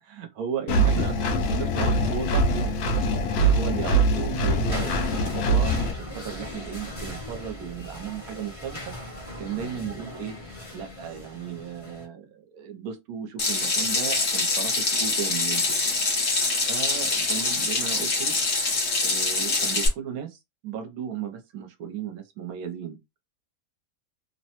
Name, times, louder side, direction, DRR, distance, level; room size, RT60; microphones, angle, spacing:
voice 1, 0.0-2.7 3.4-8.8 9.4-10.4 10.7-15.8 16.7-18.3 19.0-23.0, right 8 dB, 75° right, 1.1 m, -35 dB
Engine, 0.7-5.9, right 1 dB, 85° left, 1.1 m, -23 dB
sound 1, 4.7-12.0, left 1 dB, 25° left, 1.1 m, -37 dB
Water tap faucet / Sink (filling or washing), 13.4-19.9, left 3 dB, 50° left, 1.2 m, -25 dB
3.0 x 2.1 x 2.8 m
omnidirectional pair, 1.6 m